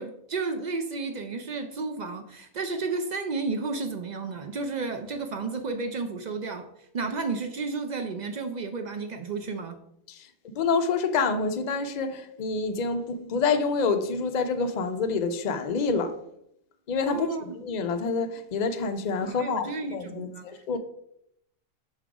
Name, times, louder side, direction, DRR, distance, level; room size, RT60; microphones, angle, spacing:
voice 1, 0.0-6.7 6.9-9.8 17.1-17.6 19.2-20.5, right 4 dB, 70° right, 0.4 m, -32 dB
voice 2, 10.1-16.1 16.9-20.8, left 4 dB, 60° left, 0.4 m, -27 dB
6.3 x 3.8 x 4.7 m
omnidirectional pair, 1.4 m